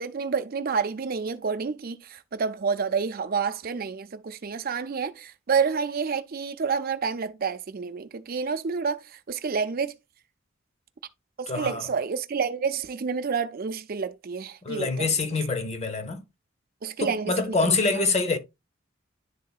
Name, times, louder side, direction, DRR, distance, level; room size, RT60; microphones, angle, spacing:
voice 1, 0.0-9.9 11.4-15.1 16.8-17.6 17.9-18.0, right 5 dB, 45° right, 0.5 m, -29 dB
voice 2, 11.5-11.8 14.6-16.2 17.0-18.4, left 3 dB, 35° left, 0.8 m, -25 dB
11.0 x 3.7 x 2.3 m
head